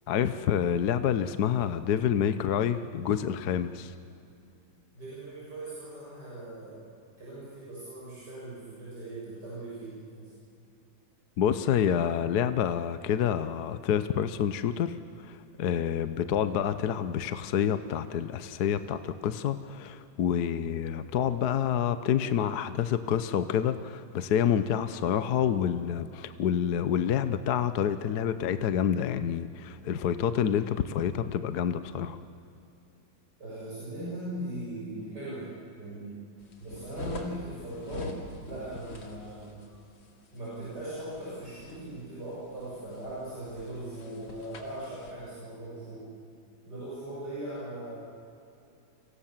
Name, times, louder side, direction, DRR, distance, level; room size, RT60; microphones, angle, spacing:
voice 1, 0.1-3.9 11.4-32.2, left 9 dB, 60° left, 11 dB, 1.3 m, -28 dB
voice 2, 4.9-10.3 33.4-36.2 36.6-39.6 40.3-46.1 46.7-48.0, right 1 dB, 55° right, -8 dB, 7.7 m, -39 dB
sound 1, 36.4-45.1, left 3 dB, 85° left, 3.2 m, -45 dB
30.0 x 24.0 x 7.4 m, 2.6 s
omnidirectional pair, 2.1 m